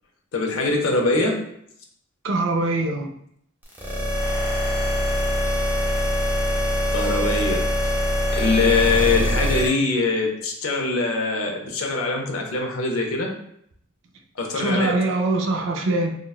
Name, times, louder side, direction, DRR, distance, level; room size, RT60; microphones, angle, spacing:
voice 1, 0.3-1.5 6.9-7.7 8.3-13.3 14.4-15.1, left 3 dB, 85° left, 1 dB, 0.6 m, -23 dB
voice 2, 2.2-3.1 14.6-16.2, right 2 dB, 60° right, 3 dB, 0.4 m, -23 dB
sound 1, 3.7-9.7, equal, 10° right, 0.5 m, -23 dB
3.7 x 2.2 x 2.3 m, 0.70 s
head